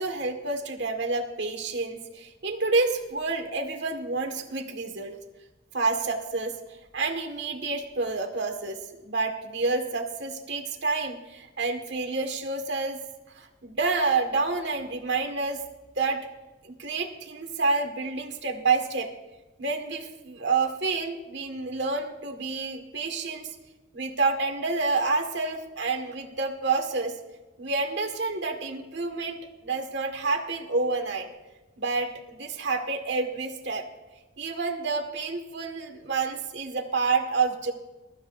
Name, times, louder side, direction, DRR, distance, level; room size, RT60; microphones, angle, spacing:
voice 1, 0.0-5.2 5.7-6.6 6.9-13.0 13.4-15.6 16.0-16.3 16.6-19.1 19.6-23.5 23.9-27.2 27.6-31.3 31.8-33.9 34.4-37.7, right 3 dB, 60° right, 4 dB, 1.9 m, -28 dB
23.0 x 13.0 x 2.7 m, 1.1 s
head